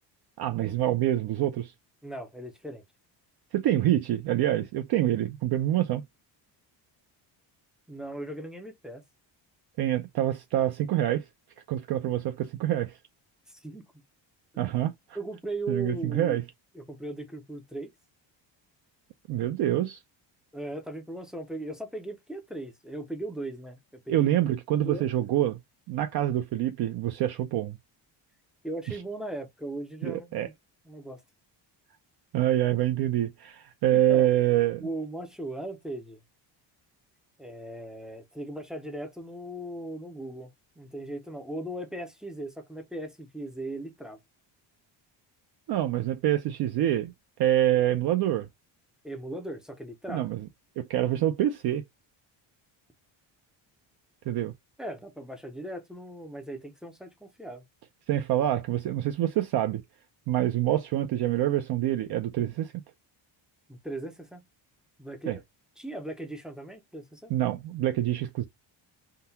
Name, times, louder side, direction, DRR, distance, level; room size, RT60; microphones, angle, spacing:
voice 1, 0.4-1.7 3.5-6.0 9.8-11.2 11.7-13.0 14.6-14.9 15.7-16.4 19.3-20.0 24.1-25.6 25.9-27.8 28.9-29.0 30.0-30.5 32.3-34.9 45.7-47.1 47.4-48.5 50.1-50.5 50.8-51.8 54.3-54.5 58.1-59.8 60.3-62.7 65.3-65.4 67.3-68.5, right 12 dB, 55° right, 0.5 m, -26 dB
voice 2, 2.0-2.8 7.9-9.0 13.5-13.8 14.5-14.6 15.1-16.4 16.7-17.9 20.5-23.8 24.1-24.3 24.7-25.1 28.6-30.5 30.9-31.2 33.9-34.3 34.8-36.2 37.4-40.5 40.8-44.2 49.0-50.3 54.8-57.6 63.7-64.4 65.0-65.4 65.8-67.3, right 1 dB, ahead, 0.4 m, -38 dB
3.8 x 2.2 x 2.6 m
cardioid pair, 160°, 47 cm